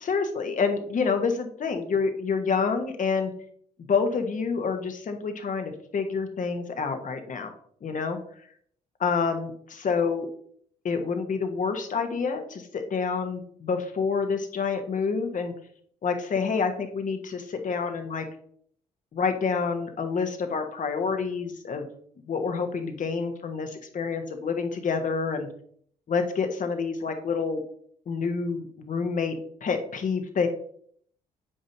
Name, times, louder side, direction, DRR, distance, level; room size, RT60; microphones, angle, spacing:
voice 1, 0.0-3.3 3.9-7.5 7.8-8.2 9.0-10.3 10.8-15.5 16.0-18.3 19.1-21.9 22.3-25.5 26.1-27.6 28.1-30.5, left 5 dB, 40° left, 6 dB, 1.1 m, -28 dB
7.7 x 5.1 x 2.8 m, 0.62 s
hypercardioid pair, 50°, 19 cm